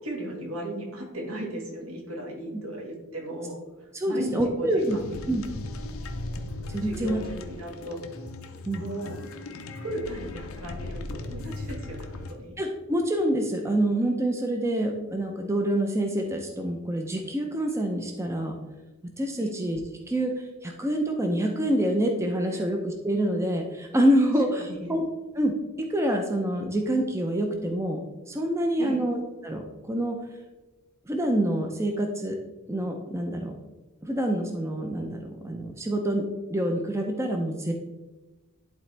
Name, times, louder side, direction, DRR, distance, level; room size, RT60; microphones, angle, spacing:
voice 1, 0.0-4.7 4.9-5.2 6.8-8.0 8.8-9.2 9.7-12.5 19.4-19.5 22.5-22.7 24.7-24.9 28.8-29.0, right 1 dB, 70° right, 0 dB, 1.8 m, -36 dB
voice 2, 3.9-5.0 5.3-5.4 6.7-7.2 8.7-8.8 12.6-18.6 19.2-19.8 20.1-25.0 25.3-25.5 25.9-30.2 31.1-32.4 32.7-33.5 34.0-36.2 36.5-37.7, right 1 dB, 15° right, 3 dB, 0.5 m, -26 dB
sound 1, 4.8-12.3, left 2 dB, 70° left, 0.6 m, -37 dB
11.0 x 4.0 x 3.3 m, 1.1 s
head